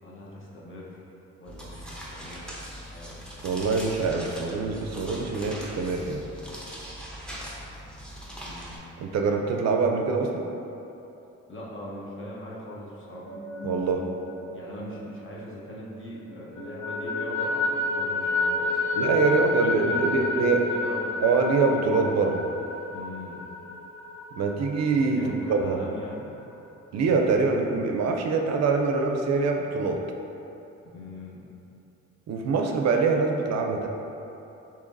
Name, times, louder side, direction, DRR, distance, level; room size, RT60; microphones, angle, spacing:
voice 1, 0.0-1.0 1.4-2.5 2.8-3.1 8.4-8.9 11.5-13.3 14.5-21.2 22.9-23.4 25.1-26.3 30.8-31.5, left 1 dB, 40° left, -5 dB, 1.0 m, -41 dB
sound 1, 1.5-8.8, equal, 5° left, 0.8 m, -41 dB
voice 2, 3.4-6.2 9.0-10.5 13.6-14.0 19.0-20.6 21.2-22.4 24.4-25.2 25.5-25.8 26.9-30.0 32.3-33.9, right 4 dB, 60° right, 2 dB, 0.5 m, -24 dB
sound 2, 13.1-15.9 16.3-25.7, left 2 dB, 65° left, 0.7 m, -30 dB
6.6 x 2.9 x 2.6 m, 2.9 s
cardioid pair, 90°, 30 cm